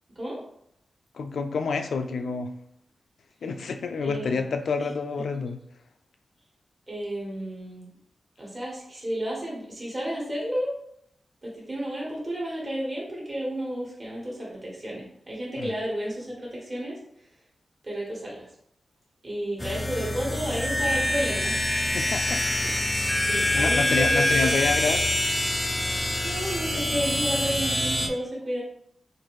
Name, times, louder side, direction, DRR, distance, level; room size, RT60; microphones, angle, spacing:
voice 1, 1.1-2.5 3.4-5.6 15.6-15.7 21.9-22.7 23.2-25.0, left 4 dB, 85° left, 6 dB, 0.3 m, -28 dB
voice 2, 4.0-4.5 6.9-7.9 8.4-10.7 11.4-17.3 17.8-18.5 19.2-21.6 23.3-24.9 26.2-28.6, equal, 30° right, -4 dB, 1.2 m, -32 dB
sound 1, 19.6-28.1, left 1 dB, 15° left, 0.4 m, -25 dB
4.3 x 2.5 x 3.0 m, 0.72 s
wide cardioid pair, 165°, 0 cm